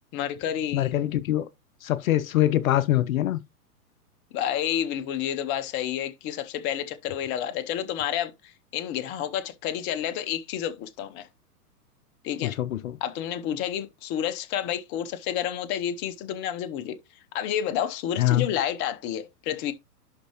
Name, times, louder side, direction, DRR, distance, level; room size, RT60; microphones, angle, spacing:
voice 1, 0.1-0.9 4.3-11.3 12.2-12.6 13.0-17.0 17.3-19.7, left 10 dB, 25° left, 0.7 m, -30 dB
voice 2, 0.7-1.5 1.8-3.4 12.4-13.0 18.2-18.5, left 13 dB, 60° left, 0.7 m, -24 dB
11.5 x 4.2 x 2.9 m
hypercardioid pair, 120°, 48 cm